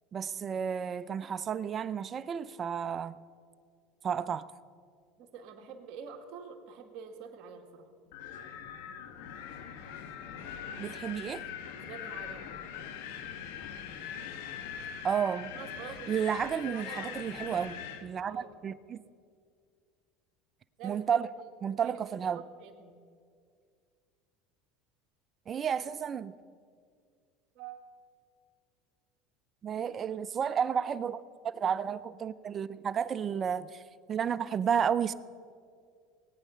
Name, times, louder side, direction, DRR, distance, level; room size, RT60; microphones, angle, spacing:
voice 1, 0.1-3.2 4.0-4.5 10.8-11.4 15.0-15.5 16.1-19.0 20.8-21.3 21.6-22.4 25.5-26.3 29.6-31.2 31.4-33.8 34.1-35.1, right 7 dB, 35° right, 0.5 m, -32 dB
voice 2, 5.2-7.9 11.9-12.5 15.4-16.2 16.5-17.4 18.3-18.5 20.8-21.5 21.8-23.0 27.6-27.9 29.7-29.8 30.1-30.2, right 6 dB, 60° right, 1.8 m, -47 dB
Wind, 8.1-18.0, left 8 dB, 80° left, 1.2 m, -42 dB
18.5 x 9.2 x 5.7 m
supercardioid pair, 110°, 0 cm